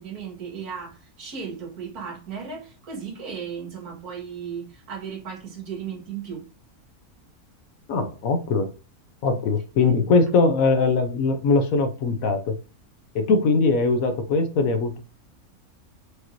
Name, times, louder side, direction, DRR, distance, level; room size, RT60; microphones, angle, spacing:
voice 1, 0.0-6.4 9.8-9.9, right 6 dB, 85° right, 1.9 m, -36 dB
voice 2, 7.9-8.7 9.2-12.5 13.1-15.0, left 4 dB, 70° left, 1.2 m, -21 dB
4.9 x 3.0 x 2.5 m
omnidirectional pair, 1.6 m